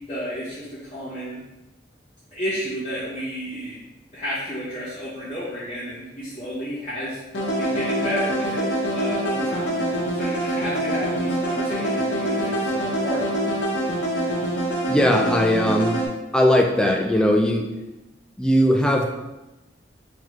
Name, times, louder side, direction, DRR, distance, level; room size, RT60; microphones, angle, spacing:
voice 1, 0.1-1.4 2.3-3.8 4.1-7.2 7.6-9.8 10.1-13.3, equal, 35° left, -12 dB, 1.1 m, -31 dB
sound 1, 7.3-16.1, right 1 dB, 90° left, 0.9 m, -25 dB
voice 2, 14.9-16.0 16.3-17.7 18.4-19.1, equal, 5° left, 1 dB, 0.3 m, -19 dB
3.5 x 3.3 x 3.1 m, 1.0 s
head